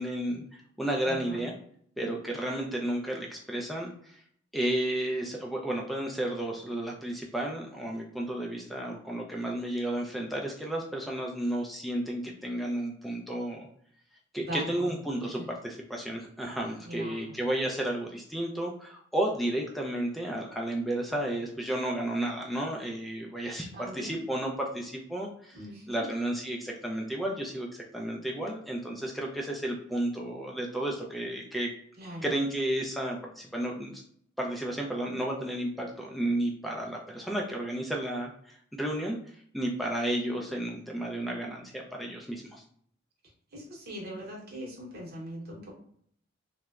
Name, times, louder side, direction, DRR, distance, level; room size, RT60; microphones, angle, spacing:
voice 1, 0.0-1.5 2.0-4.2 4.5-13.7 14.3-25.6 25.9-31.7 32.2-34.0 34.4-39.2 39.5-42.6, right 1 dB, ahead, -1 dB, 0.3 m, -32 dB
voice 2, 1.0-1.4 14.4-14.9 15.4-15.5 16.8-17.3 23.7-24.2 25.5-26.1 32.0-32.3 43.5-45.7, right 1 dB, 50° right, -1 dB, 0.9 m, -40 dB
2.9 x 2.1 x 2.3 m, 0.64 s
head